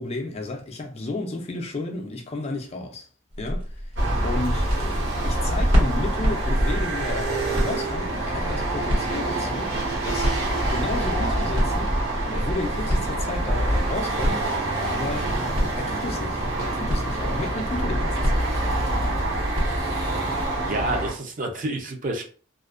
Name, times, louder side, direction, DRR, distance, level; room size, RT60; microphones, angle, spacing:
voice 1, 0.0-3.1 3.4-12.0 12.2-14.5 14.9-18.5, left 2 dB, 30° left, 0.3 m, -33 dB
sound 1, 3.3-20.8, equal, 90° right, 1.3 m, -30 dB
sound 2, 4.0-21.1, right 1 dB, 65° right, 0.8 m, -26 dB
voice 2, 20.7-22.2, right 2 dB, 40° right, 0.4 m, -28 dB
2.4 x 2.1 x 2.4 m
head